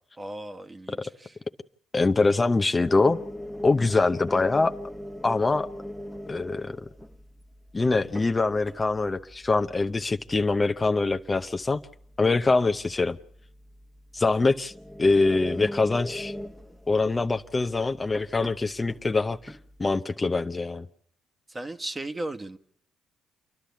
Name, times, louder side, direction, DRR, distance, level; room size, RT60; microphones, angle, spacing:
voice 1, 0.2-1.4 21.5-22.6, right 2 dB, 25° right, 1.4 m, -36 dB
voice 2, 1.9-3.2 3.6-4.7 5.2-5.7 6.3-6.7 7.7-11.8 12.2-13.2 14.1-14.7 15.0-16.3 16.9-20.9, left 3 dB, 30° left, 0.8 m, -24 dB
sound 1, 2.8-20.0, left 1 dB, ahead, 1.2 m, -41 dB
28.5 x 11.5 x 8.3 m
supercardioid pair, 55°, 0 cm